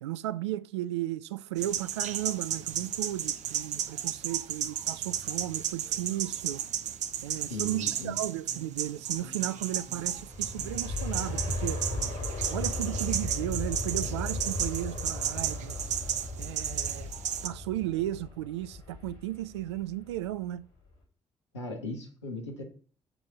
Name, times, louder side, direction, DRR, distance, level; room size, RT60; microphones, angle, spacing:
voice 1, 0.0-6.6 7.2-11.8 12.5-15.9 16.4-17.1 17.4-20.6, right 14 dB, 75° right, 0.4 m, -35 dB
sound 1, 1.6-17.5, right 9 dB, 55° right, 0.8 m, -33 dB
voice 2, 7.5-8.2 21.5-22.6, left 2 dB, 85° left, 1.5 m, -38 dB
sound 2, 7.5-14.2, left 3 dB, 20° left, 1.2 m, -53 dB
Aircraft, 9.6-20.4 20.9-21.0, left 2 dB, 65° left, 3.1 m, -36 dB
7.1 x 7.0 x 3.9 m
figure-of-eight pair, 40°, 14 cm